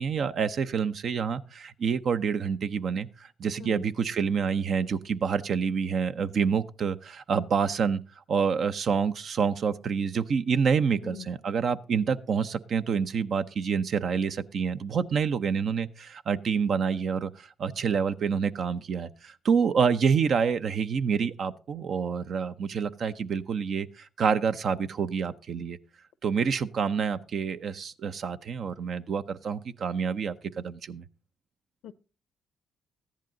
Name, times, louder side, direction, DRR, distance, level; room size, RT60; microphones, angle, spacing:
voice 1, 0.0-8.0 8.3-25.8 26.2-31.0, right 6 dB, 60° right, 0.7 m, -27 dB
voice 2, 3.6-3.8 11.0-11.3 31.8-31.9, left 10 dB, 75° left, 0.7 m, -42 dB
14.0 x 10.5 x 3.9 m
supercardioid pair, 55°, 0 cm